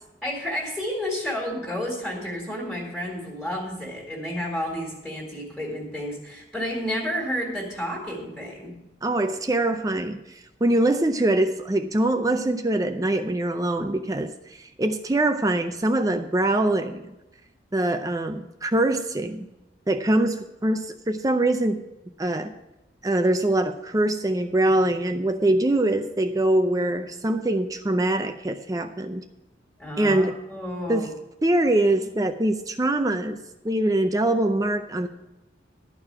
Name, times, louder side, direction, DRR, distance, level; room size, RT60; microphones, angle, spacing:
voice 1, 0.2-8.7 29.8-31.1, equal, ahead, -3 dB, 2.1 m, -31 dB
voice 2, 9.0-17.0 17.7-19.5 19.9-21.8 22.2-22.5 23.0-29.2 30.0-30.3 30.9-31.1 31.4-33.4 33.6-35.1, right 1 dB, 20° right, 7 dB, 0.5 m, -23 dB
13.0 x 4.8 x 8.7 m, 0.95 s
head